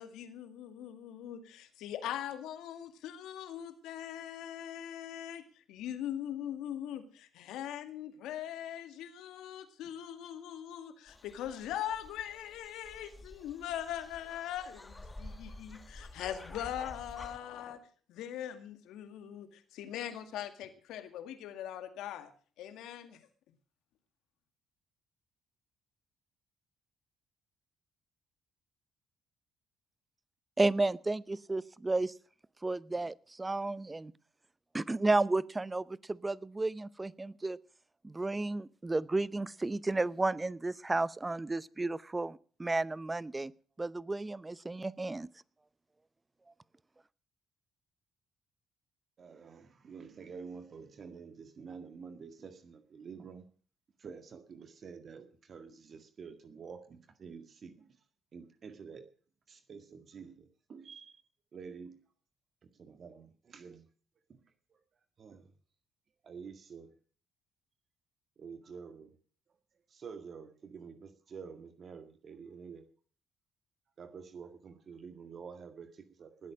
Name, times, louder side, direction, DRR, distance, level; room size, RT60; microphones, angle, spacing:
voice 1, 0.0-17.8 18.1-22.3 22.6-23.2, left 11 dB, 75° left, 1.9 m, -41 dB
sound 1, 11.1-17.4, left 2 dB, 20° left, 1.8 m, -50 dB
voice 2, 30.6-32.1 32.6-34.1 34.7-37.6 38.0-43.5 43.8-45.3, right 2 dB, 20° right, 0.7 m, -32 dB
voice 3, 49.2-53.5 54.0-58.0 58.3-59.1 59.5-61.2 61.5-62.0 62.6-63.9 64.3-64.8 65.2-65.5 66.2-66.9 68.4-69.2 69.9-72.9 74.0-76.5, right 5 dB, 50° right, 1.9 m, -49 dB
19.0 x 8.4 x 6.2 m
supercardioid pair, 60°, 0 cm